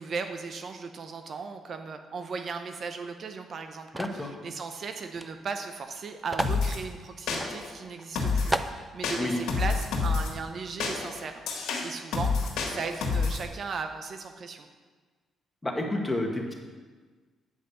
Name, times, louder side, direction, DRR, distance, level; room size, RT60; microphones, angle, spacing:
voice 1, 0.0-14.7, right 5 dB, 55° right, 6 dB, 0.7 m, -37 dB
voice 2, 3.9-4.4 9.2-9.4 15.6-16.5, left 1 dB, 15° left, 1 dB, 1.6 m, -30 dB
sound 1, 4.0-4.3 5.2-5.3 5.5-5.6 6.3-6.6 7.3-7.5 8.0-8.1 8.5-8.8, right 1 dB, 10° right, 0.5 m, -31 dB
sound 2, 6.4-6.8 7.3-7.7 8.2-8.6 9.0-10.3 10.8-13.4, left 4 dB, 85° left, 1.5 m, -29 dB
8.9 x 5.0 x 6.8 m, 1.4 s
cardioid pair, 90°, 0 cm